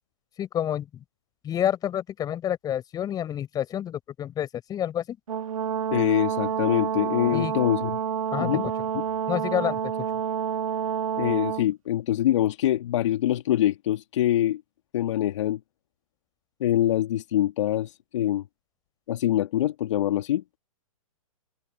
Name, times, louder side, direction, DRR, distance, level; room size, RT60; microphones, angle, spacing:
voice 1, 0.4-1.0 1.4-5.2 7.3-7.6 8.3-8.7 9.3-9.9, left 10 dB, 20° left, 6.0 m, -29 dB
Brass instrument, 5.3-11.7, right 8 dB, 70° right, 1.4 m, -28 dB
voice 2, 5.9-8.0 8.4-8.7 8.9-9.0 11.2-14.6 14.9-15.6 16.6-18.4 19.1-20.4, left 12 dB, 55° left, 1.9 m, -24 dB
open air
hypercardioid pair, 125°, 18 cm